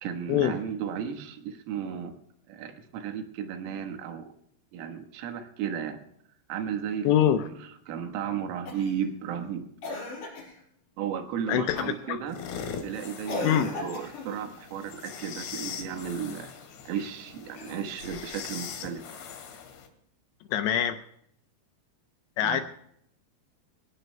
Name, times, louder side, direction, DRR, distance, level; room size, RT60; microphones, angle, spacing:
voice 1, 0.0-2.1 2.5-4.3 4.7-6.0 6.5-7.1 7.3-9.7 11.0-12.4 12.8-16.5 16.9-19.0 22.4-22.6, right 8 dB, 90° right, 6 dB, 4.1 m, -34 dB
voice 2, 7.0-7.4 11.5-12.2 13.4-13.7 20.5-21.0 22.4-22.6, left 10 dB, 85° left, 8 dB, 2.5 m, -24 dB
Cough, 8.7-9.0 9.8-10.6 11.8-12.1 13.3-14.3 17.4-18.2 19.7-19.8, left 3 dB, 40° left, 5.8 m, -37 dB
sound 1, 12.3-19.9, left 7 dB, 60° left, 3.9 m, -41 dB
25.0 x 18.5 x 2.2 m, 0.71 s
omnidirectional pair, 5.8 m